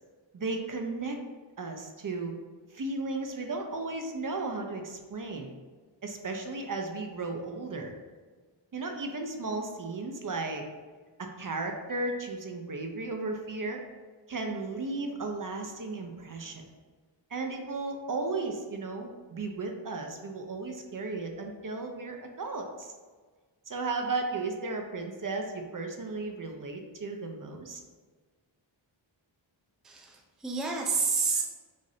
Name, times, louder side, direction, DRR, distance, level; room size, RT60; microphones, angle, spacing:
voice 1, 0.3-1.2 1.6-2.3 2.7-5.5 6.0-7.9 8.7-10.7 11.2-13.8 14.3-16.6 17.3-22.9 23.7-27.8, right 3 dB, 45° right, 3 dB, 0.6 m, -35 dB
voice 2, 29.8-31.5, right 5 dB, ahead, 1 dB, 0.4 m, -29 dB
6.3 x 2.6 x 2.8 m, 1.4 s
wide cardioid pair, 90°, 48 cm